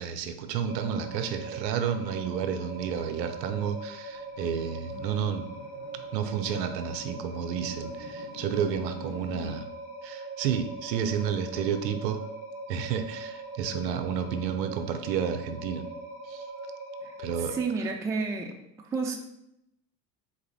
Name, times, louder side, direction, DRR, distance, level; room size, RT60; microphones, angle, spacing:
voice 1, 0.0-5.5 6.1-9.7 10.0-12.2 12.7-15.9 16.2-16.5 17.2-17.6, right 8 dB, 80° right, 8 dB, 0.6 m, -31 dB
sound 1, 0.6-17.6, right 2 dB, 35° left, 1.6 m, -41 dB
sound 2, 3.6-9.6, left 2 dB, 80° left, 1.1 m, -47 dB
voice 2, 17.5-18.6 18.9-19.2, right 4 dB, 5° right, 1 dB, 0.3 m, -30 dB
4.0 x 2.6 x 3.9 m, 0.79 s
hypercardioid pair, 70°, 50 cm